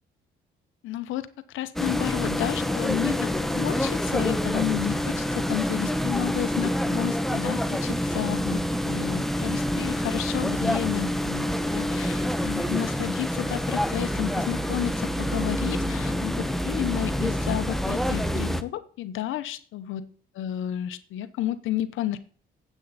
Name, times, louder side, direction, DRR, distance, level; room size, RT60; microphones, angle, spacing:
voice 1, 0.8-11.5 11.7-20.1 20.3-22.2, left 13 dB, 85° left, 12 dB, 0.8 m, -31 dB
sound 1, 1.8-18.6, equal, ahead, 0.9 m, -27 dB
9.9 x 8.2 x 4.1 m, 0.43 s
cardioid pair, 90°, 20 cm